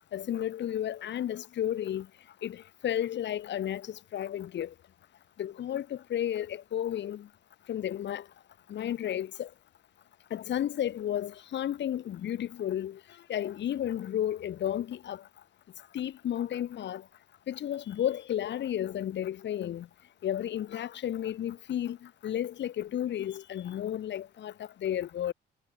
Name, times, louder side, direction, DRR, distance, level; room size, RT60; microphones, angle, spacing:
voice 1, 0.1-2.1 2.4-4.7 5.4-7.3 7.7-8.2 8.7-9.5 10.3-13.0 13.3-15.2 15.9-17.0 17.5-19.9 20.2-25.3, left 11 dB, 65° left, 1.5 m, -32 dB
cardioid pair, 90°, 20 cm